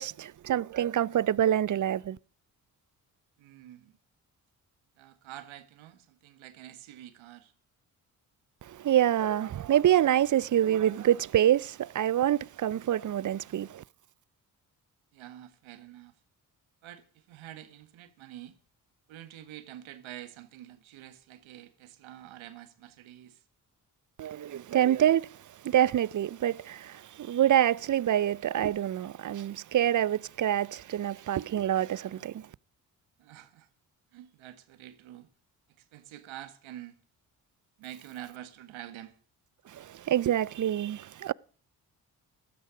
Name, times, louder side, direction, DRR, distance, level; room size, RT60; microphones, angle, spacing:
voice 1, 0.0-2.2 8.7-13.8 24.2-25.3 25.6-32.5 39.7-41.3, right 11 dB, 40° right, 0.6 m, -26 dB
voice 2, 3.4-3.9 5.0-7.5 15.1-16.1 16.8-18.6 19.1-23.4 33.2-33.7 34.1-35.3 35.8-37.0 37.8-39.1, right 12 dB, 80° right, 1.7 m, -47 dB
16.0 x 13.0 x 5.1 m
hypercardioid pair, 45°, 47 cm